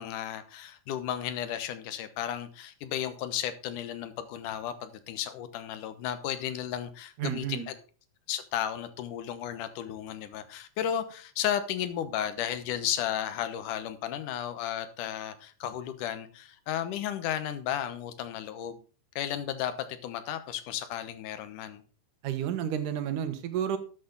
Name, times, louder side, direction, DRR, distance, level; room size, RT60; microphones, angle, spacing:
voice 1, 0.0-7.7 8.3-18.8 19.2-21.8, left 10 dB, 90° left, 2.6 m, -34 dB
voice 2, 7.2-7.7 22.2-23.8, right 9 dB, 85° right, 2.8 m, -31 dB
13.0 x 8.5 x 3.9 m
omnidirectional pair, 3.5 m